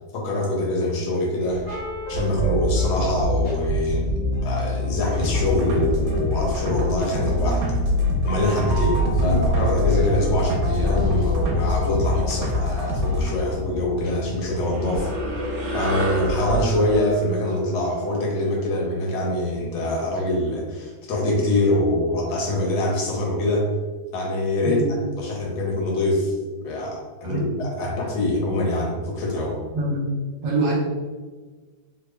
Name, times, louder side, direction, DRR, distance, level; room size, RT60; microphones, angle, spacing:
voice 1, 0.1-1.7 2.1-4.1 4.4-7.6 8.2-15.1 15.7-23.7 24.1-24.8 25.2-26.3 26.6-29.6, left 1 dB, 75° left, -1 dB, 1.5 m, -24 dB
sound 1, 1.5-16.6, equal, 55° left, 1.1 m, -27 dB
sound 2, 5.1-13.3, left 1 dB, 85° right, 1.4 m, -25 dB
sound 3, 14.4-19.1, right 1 dB, 50° right, 0.6 m, -32 dB
voice 2, 29.7-30.1 30.4-30.7, right 2 dB, 65° right, -4 dB, 1.5 m, -24 dB
3.5 x 2.0 x 3.3 m, 1.4 s
omnidirectional pair, 2.2 m